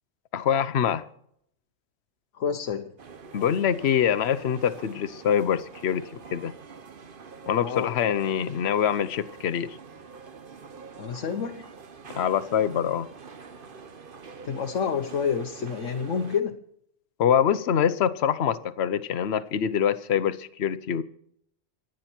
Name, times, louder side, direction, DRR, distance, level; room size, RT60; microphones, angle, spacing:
voice 1, 0.3-1.1 3.3-6.0 6.3-6.5 7.5-9.8 12.1-13.1 17.2-21.0, left 8 dB, 60° left, 13 dB, 1.1 m, -24 dB
voice 2, 2.3-2.9 7.6-7.9 11.0-11.7 14.4-16.6, left 6 dB, 90° left, 4 dB, 1.4 m, -29 dB
sound 1, 3.0-16.4, right 5 dB, 45° right, 1.1 m, -45 dB
26.0 x 9.1 x 4.4 m, 0.70 s
omnidirectional pair, 1.3 m